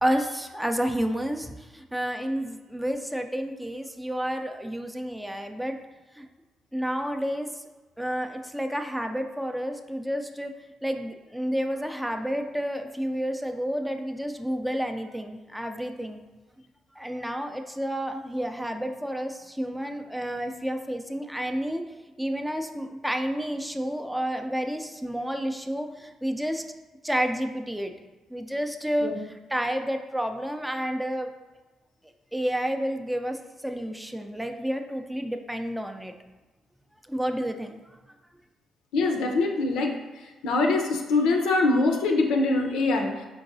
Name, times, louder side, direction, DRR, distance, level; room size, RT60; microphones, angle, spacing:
voice 1, 0.0-5.8 6.2-6.3 6.7-7.6 8.0-10.5 10.8-16.2 16.9-21.8 22.2-26.6 27.0-27.9 28.3-31.3 32.3-36.1 37.1-37.8, equal, 5° right, 5 dB, 0.4 m, -30 dB
voice 2, 38.9-39.9 40.4-43.3, left 3 dB, 90° left, 3 dB, 0.6 m, -23 dB
4.5 x 3.9 x 2.6 m, 1.2 s
cardioid pair, 90°, 0 cm